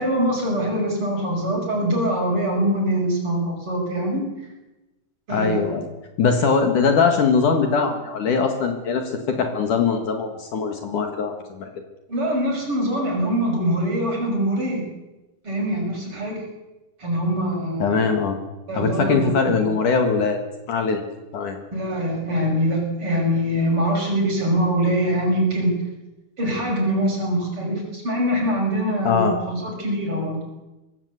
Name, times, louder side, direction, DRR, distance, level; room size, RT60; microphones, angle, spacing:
voice 1, 0.0-4.2 5.3-5.7 12.1-14.8 15.4-16.4 17.0-17.8 18.7-19.6 21.7-25.7 26.4-30.4, equal, 35° right, 0 dB, 6.7 m, -23 dB
voice 2, 5.3-5.8 6.2-11.7 17.8-18.3 18.7-20.4 20.7-21.0 21.3-21.6 29.0-29.4, left 5 dB, 60° left, 5 dB, 3.1 m, -21 dB
23.5 x 17.5 x 8.2 m, 1.0 s
omnidirectional pair, 4.4 m